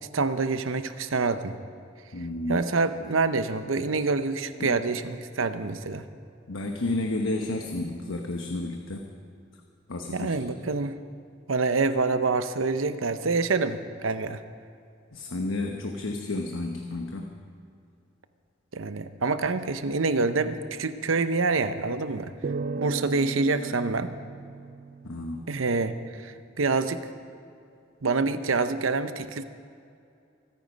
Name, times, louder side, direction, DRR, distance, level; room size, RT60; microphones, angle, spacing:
voice 1, 0.1-1.5 2.5-6.1 10.1-11.0 11.5-14.4 18.7-22.3 22.8-24.1 25.5-27.1 28.0-29.4, right 3 dB, 85° right, 11 dB, 0.8 m, -26 dB
voice 2, 2.1-2.6 4.6-4.8 6.5-9.1 9.9-10.3 15.1-17.3 25.0-25.4, left 2 dB, 90° left, 3 dB, 1.0 m, -31 dB
sound 1, 22.4-25.8, right 3 dB, 45° right, 0.4 m, -35 dB
24.5 x 9.3 x 5.2 m, 2.5 s
head